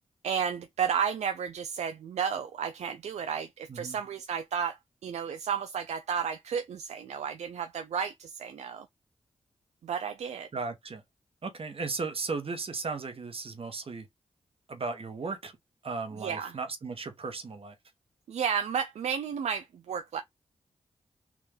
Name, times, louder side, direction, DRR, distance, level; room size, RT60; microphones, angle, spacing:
voice 1, 0.2-8.9 9.8-10.5 16.2-16.5 18.3-20.2, right 7 dB, 80° right, 0.4 m, -32 dB
voice 2, 10.5-11.0 11.4-14.1 14.7-15.5 15.8-17.7, right 4 dB, 55° right, 1.1 m, -36 dB
3.6 x 2.5 x 3.4 m
cardioid pair, 45°, 11 cm